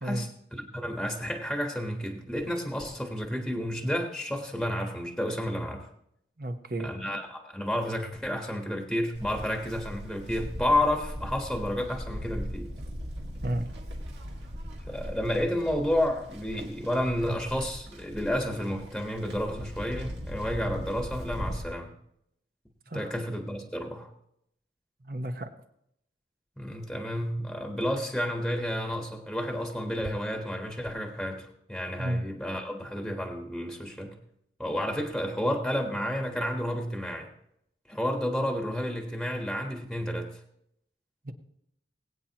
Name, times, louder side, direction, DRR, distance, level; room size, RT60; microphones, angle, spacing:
voice 1, 0.0-5.9 6.8-12.7 14.9-21.9 22.9-24.1 26.6-34.1 34.6-37.3 37.9-40.3, left 1 dB, ahead, 2 dB, 1.3 m, -31 dB
voice 2, 6.4-6.9 13.4-13.7 22.9-23.1 25.0-25.5 32.0-32.2 41.2-41.3, right 1 dB, 55° right, 7 dB, 1.1 m, -32 dB
Livestock farm animals working animals, 9.1-21.6, equal, 80° right, 2.1 m, -39 dB
21.0 x 9.0 x 3.0 m, 0.75 s
head